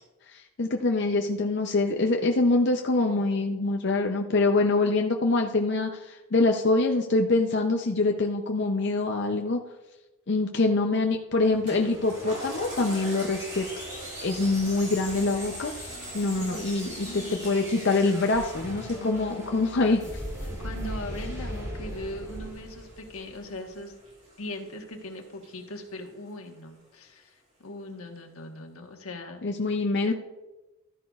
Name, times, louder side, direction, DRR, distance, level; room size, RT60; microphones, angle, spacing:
voice 1, 0.3-9.6 10.3-13.7 14.2-20.0 29.4-30.1, left 3 dB, 50° left, 3 dB, 0.6 m, -25 dB
sound 1, 11.3-23.7, equal, 15° right, 2.7 m, -40 dB
Toilet flush, 11.7-26.5 27.0-27.1, right 1 dB, 30° right, 3.3 m, -45 dB
sound 2, 13.5-22.5, right 2 dB, 65° right, 1.1 m, -46 dB
voice 2, 16.3-17.6 18.9-20.1 20.4-24.0 24.4-29.4 30.1-30.2, left 1 dB, 80° left, 3 dB, 1.3 m, -40 dB
13.0 x 10.0 x 2.4 m, 1.1 s
head